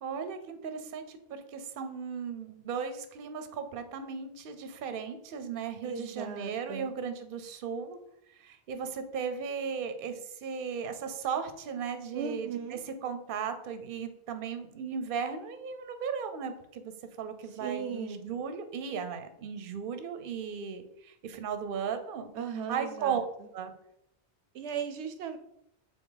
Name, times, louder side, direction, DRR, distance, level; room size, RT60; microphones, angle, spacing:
voice 1, 0.0-8.0 8.4-22.3 22.7-23.2 23.5-23.7, right 6 dB, 55° right, 9 dB, 0.8 m, -36 dB
voice 2, 5.8-6.9 12.1-12.8 17.6-18.3 22.4-23.2 24.5-25.4, right 6 dB, 80° right, 8 dB, 0.9 m, -37 dB
6.2 x 4.2 x 3.9 m, 0.76 s
omnidirectional pair, 1.1 m